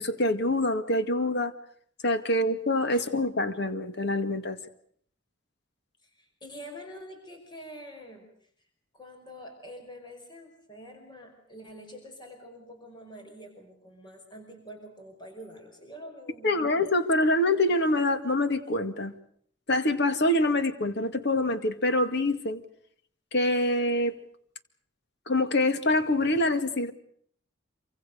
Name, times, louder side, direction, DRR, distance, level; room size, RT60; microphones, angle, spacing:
voice 1, 0.0-1.5 2.0-4.6 16.4-19.1 19.7-22.6 23.3-24.1 25.3-26.9, left 1 dB, 60° left, 10 dB, 2.1 m, -25 dB
voice 2, 6.0-8.5 8.9-16.8, equal, 25° left, 3 dB, 5.3 m, -46 dB
27.0 x 25.0 x 6.7 m, 0.62 s
head